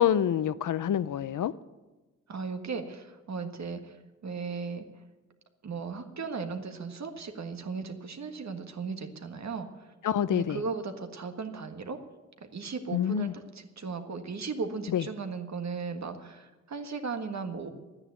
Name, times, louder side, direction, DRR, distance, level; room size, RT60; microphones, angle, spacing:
voice 1, 0.0-1.5 10.0-10.6 12.9-13.3 14.9-15.0, left 9 dB, 80° left, 0.6 m, -26 dB
voice 2, 2.3-3.9 4.2-4.9 5.6-9.7 10.3-12.0 12.5-17.7, right 4 dB, 60° right, 1.6 m, -36 dB
12.5 x 9.8 x 9.4 m
wide cardioid pair, 90°, 31 cm